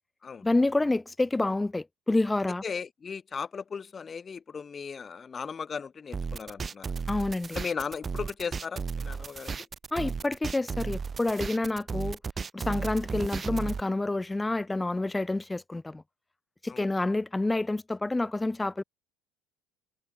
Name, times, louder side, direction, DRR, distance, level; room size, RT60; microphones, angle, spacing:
voice 1, 0.4-2.6 7.1-7.6 9.9-12.2 12.5-16.0 16.6-18.8, left 2 dB, 10° left, 1.0 m, -28 dB
voice 2, 2.6-6.9 7.5-9.7 16.7-16.9, left 6 dB, 30° left, 0.6 m, -37 dB
sound 1, 6.1-13.8, right 5 dB, 30° right, 2.0 m, -34 dB
hypercardioid pair, 65°, 0 cm